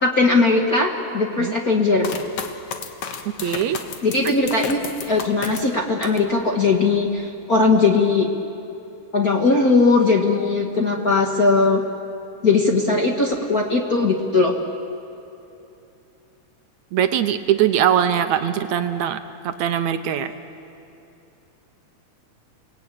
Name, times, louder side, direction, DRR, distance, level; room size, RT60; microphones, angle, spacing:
voice 1, 0.0-2.1 4.0-4.8 5.1-8.3 9.1-11.8 12.4-14.5, left 3 dB, 40° left, 1 dB, 1.4 m, -19 dB
sound 1, 2.0-6.3 6.8-7.4, left 6 dB, 60° left, 2.2 m, -33 dB
voice 2, 3.4-3.8 16.9-19.2 19.4-20.3, right 10 dB, 75° right, 9 dB, 2.0 m, -21 dB
29.5 x 19.0 x 9.0 m, 2.8 s
omnidirectional pair, 3.5 m